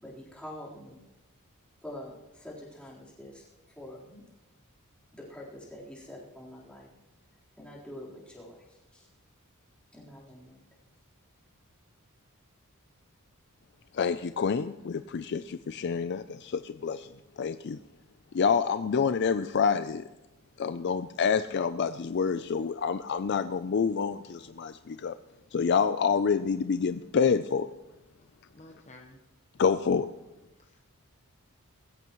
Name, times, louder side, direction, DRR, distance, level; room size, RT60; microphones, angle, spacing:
voice 1, 0.0-1.0 1.8-4.2 5.1-6.9 7.6-9.1 9.9-10.7, left 1 dB, 5° left, -6 dB, 3.9 m, -46 dB
voice 2, 13.9-17.1 17.4-17.8 18.3-20.0 20.6-25.1 25.5-27.7 29.6-30.1, left 6 dB, 50° left, 11 dB, 0.4 m, -27 dB
voice 3, 28.5-29.2 30.6-30.8, left 2 dB, 30° left, 2 dB, 1.0 m, -52 dB
20.5 x 16.0 x 3.1 m, 1.0 s
head